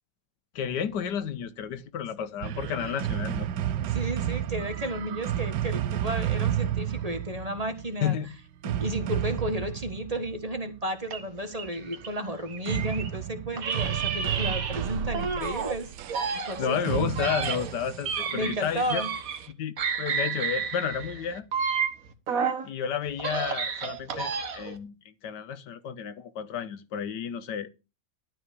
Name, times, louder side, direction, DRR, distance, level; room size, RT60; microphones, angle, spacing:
voice 1, 0.5-3.5 8.0-8.3 16.6-19.0 19.5-21.5 22.6-27.7, left 8 dB, 75° left, 1.5 m, -31 dB
sound 1, 2.4-10.8 12.7-19.4, right 11 dB, 75° right, 1.3 m, -32 dB
voice 2, 3.8-8.2 8.6-15.9 16.3-17.1 18.3-19.1, right 1 dB, 20° right, 1.4 m, -33 dB
sound 2, 11.1-13.2 13.6-15.8 16.1-19.5 19.8-22.7 23.1-24.8, right 6 dB, 55° right, 1.6 m, -31 dB
12.5 x 4.8 x 6.9 m
omnidirectional pair, 1.9 m